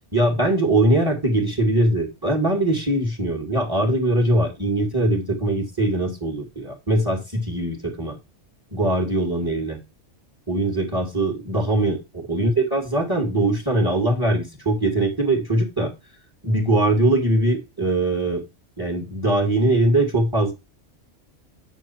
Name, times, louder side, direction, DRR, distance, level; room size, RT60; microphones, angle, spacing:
voice 1, 0.1-8.2 8.7-9.8 10.5-15.9 16.4-18.4 18.8-20.5, right 1 dB, 15° right, 4 dB, 2.3 m, -21 dB
9.2 x 6.5 x 4.5 m, 0.25 s
omnidirectional pair, 1.3 m